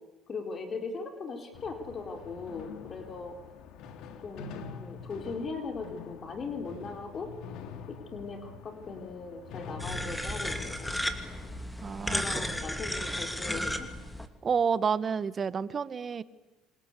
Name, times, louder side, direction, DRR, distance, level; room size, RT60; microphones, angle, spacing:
voice 1, 0.3-3.4 4.2-7.3 7.9-10.9 12.1-13.9, left 4 dB, 35° left, 4 dB, 4.1 m, -39 dB
sound 1, 1.5-11.6, left 6 dB, 65° left, 2.8 m, -45 dB
sound 2, 9.8-14.3, left 1 dB, 5° left, 2.6 m, -34 dB
voice 2, 11.8-12.2 14.4-16.2, right 6 dB, 35° right, 15 dB, 1.3 m, -29 dB
27.0 x 26.5 x 8.4 m, 1.1 s
supercardioid pair, 105°, 0 cm